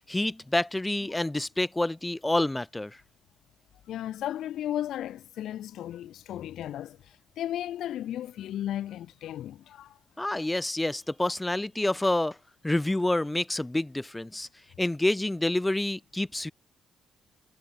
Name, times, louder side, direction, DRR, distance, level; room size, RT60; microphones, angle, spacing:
voice 1, 0.1-3.0 10.2-12.4 12.6-14.5 14.8-16.5, left 1 dB, 10° left, 1.8 m, -28 dB
voice 2, 3.9-10.0, left 12 dB, 75° left, 1.3 m, -35 dB
cardioid pair, 90°, 0 cm